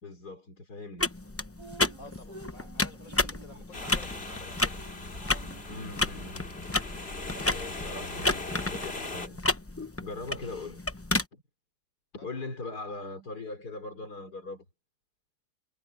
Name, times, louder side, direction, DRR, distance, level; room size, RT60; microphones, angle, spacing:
voice 1, 0.0-1.1 5.7-6.5 7.3-9.4 10.0-10.8 11.3-11.4 12.1-14.7, left 3 dB, 80° left, 4.1 m, -40 dB
sound 1, 1.0-11.2, left 2 dB, 15° left, 0.5 m, -32 dB
Drip, 1.6-6.8, right 3 dB, 85° right, 5.1 m, -51 dB
voice 2, 2.0-4.8 12.2-12.5, left 3 dB, 55° left, 5.0 m, -50 dB
sound 2, 3.7-9.3, left 2 dB, 40° left, 3.1 m, -40 dB
omnidirectional pair, 1.7 m